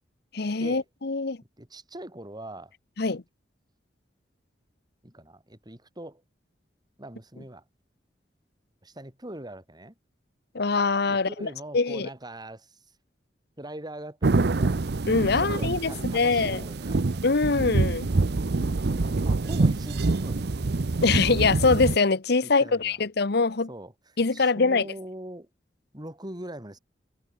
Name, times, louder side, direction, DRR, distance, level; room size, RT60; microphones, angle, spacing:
voice 1, 0.3-1.4 3.0-3.2 10.5-11.5 11.7-12.1 15.1-16.6 17.2-18.1 21.0-23.7 24.2-24.9, left 4 dB, 65° left, 1.0 m, -23 dB
voice 2, 1.6-2.7 5.0-6.2 7.0-7.6 8.8-9.9 11.1-12.8 13.6-14.8 15.4-17.0 18.9-20.6 22.4-23.0 23.7-23.9 24.3-25.5 25.9-26.8, right 1 dB, 25° right, 6.0 m, -42 dB
sound 1, 14.2-22.0, right 3 dB, 65° right, 0.7 m, -26 dB
head